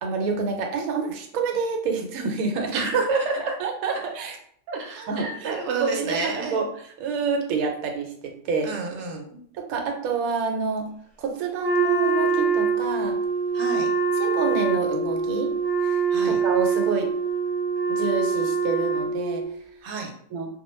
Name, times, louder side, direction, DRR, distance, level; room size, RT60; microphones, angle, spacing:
voice 1, 0.0-2.9 3.6-4.4 5.1-5.5 5.8-6.7 7.0-8.7 9.5-10.9 11.2-13.2 14.2-15.5 15.8-17.1 17.9-19.4 20.3-20.5, right 4 dB, 85° right, 3 dB, 1.0 m, -28 dB
voice 2, 2.7-3.6 4.7-6.6 8.6-9.3 13.5-13.9 16.1-16.4 19.8-20.1, right 4 dB, 60° right, 1 dB, 0.8 m, -28 dB
Wind instrument woodwind instrument, 11.6-19.5, right 5 dB, ahead, 0.7 m, -24 dB
2.2 x 2.2 x 3.0 m, 0.63 s
omnidirectional pair, 1.5 m